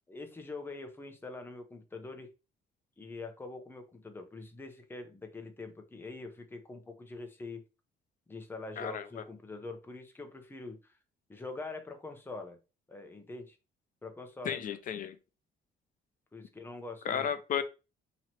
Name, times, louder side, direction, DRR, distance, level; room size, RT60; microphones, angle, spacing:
voice 1, 0.1-2.3 3.0-7.6 8.3-11.0 11.3-12.6 12.9-13.6 14.0-14.8 16.3-17.3, left 3 dB, 10° left, 0.8 m, -44 dB
voice 2, 14.4-15.2 17.0-17.6, left 8 dB, 50° left, 0.5 m, -33 dB
3.0 x 2.9 x 4.1 m
cardioid pair, 125°, 17 cm